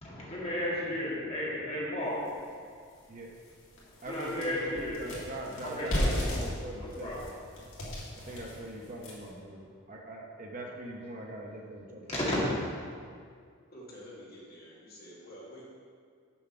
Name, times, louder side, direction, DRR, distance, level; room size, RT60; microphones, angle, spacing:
voice 1, 0.0-2.4 4.0-5.0 5.6-6.2 6.7-7.2 8.1-8.3 12.1-12.4, left 1 dB, 30° left, -7 dB, 2.2 m, -34 dB
sound 1, 2.3-2.4 2.9-3.0 3.3-9.4, equal, 75° left, 2.1 m, -35 dB
voice 2, 4.0-7.2 8.2-12.4, right 1 dB, 40° right, 0 dB, 0.8 m, -42 dB
voice 3, 13.7-15.6, equal, 45° left, -6 dB, 2.0 m, -48 dB
7.1 x 5.4 x 5.9 m, 2.1 s
head